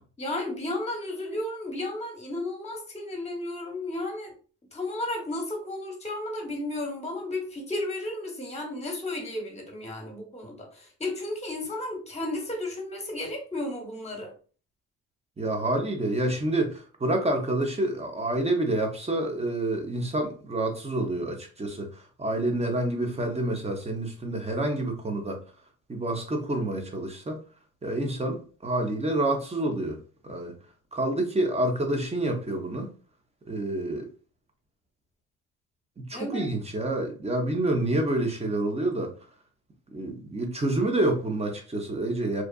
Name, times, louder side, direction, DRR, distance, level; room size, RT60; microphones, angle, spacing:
voice 1, 0.2-4.3 4.7-14.3 36.1-36.5, left 1 dB, 20° left, 2 dB, 1.0 m, -33 dB
voice 2, 15.4-25.4 25.9-27.4 27.8-30.6 30.9-32.9 33.5-34.1 36.0-39.2 39.9-42.4, right 1 dB, 20° right, 3 dB, 0.6 m, -28 dB
2.7 x 2.3 x 2.2 m, 0.38 s
cardioid pair, 90°, 30 cm